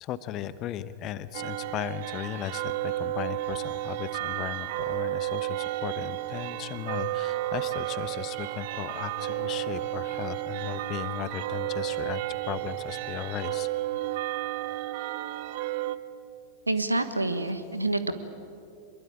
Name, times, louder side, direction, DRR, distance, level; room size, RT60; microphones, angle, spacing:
voice 1, 0.0-13.7, left 12 dB, 35° left, 15 dB, 1.1 m, -36 dB
sound 1, 1.3-16.0, right 16 dB, 50° right, 0.8 m, -32 dB
voice 2, 16.7-18.1, right 2 dB, 85° right, 11 dB, 1.5 m, -27 dB
25.0 x 22.5 x 8.8 m, 2.5 s
figure-of-eight pair, 90°, 0 cm